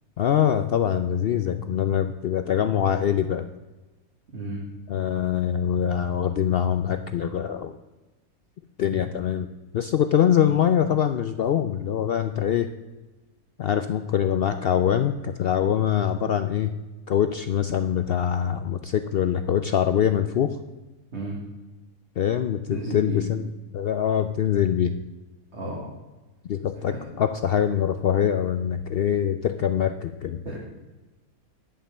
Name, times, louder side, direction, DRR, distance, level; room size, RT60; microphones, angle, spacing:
voice 1, 0.2-3.5 4.9-7.8 8.8-9.5 9.7-12.7 13.6-16.7 17.1-20.6 22.2-23.4 23.7-24.9 26.5-30.4, left 9 dB, 75° left, 9 dB, 0.5 m, -24 dB
voice 2, 4.3-4.6 8.9-9.0 21.1-21.4 22.7-23.2 25.5-25.9 26.9-27.0 30.4-30.6, right 1 dB, 50° right, -3 dB, 2.3 m, -33 dB
11.0 x 5.5 x 7.3 m, 1.2 s
omnidirectional pair, 1.5 m